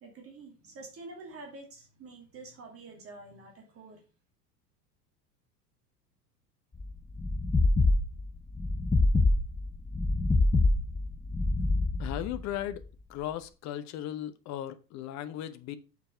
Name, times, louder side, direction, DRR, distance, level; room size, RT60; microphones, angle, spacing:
voice 1, 0.0-4.0, right 3 dB, 30° right, 2.6 m, -47 dB
sound 1, 6.8-12.9, left 2 dB, 5° left, 0.4 m, -26 dB
voice 2, 12.0-12.8 13.1-15.8, left 11 dB, 35° left, 0.9 m, -36 dB
6.9 x 5.9 x 5.5 m
figure-of-eight pair, 85°, 48 cm